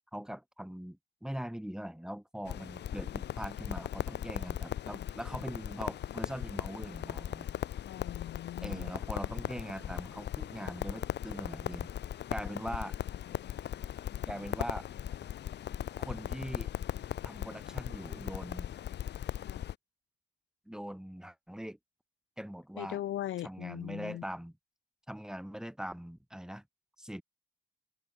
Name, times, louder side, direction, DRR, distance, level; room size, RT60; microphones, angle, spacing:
voice 1, 0.1-7.5 8.6-11.9 12.3-13.0 14.3-14.9 16.0-16.7 17.2-18.7 20.6-21.8 22.4-23.0 23.4-24.6 25.1-26.6 27.0-27.2, equal, 5° right, 5.1 m, -41 dB
Crackle, 2.5-19.7, left 11 dB, 60° left, 1.0 m, -38 dB
voice 2, 7.9-8.9 13.4-13.6 19.4-19.6 22.8-24.2, left 13 dB, 80° left, 4.6 m, -40 dB
open air
cardioid pair, 90°, 20 cm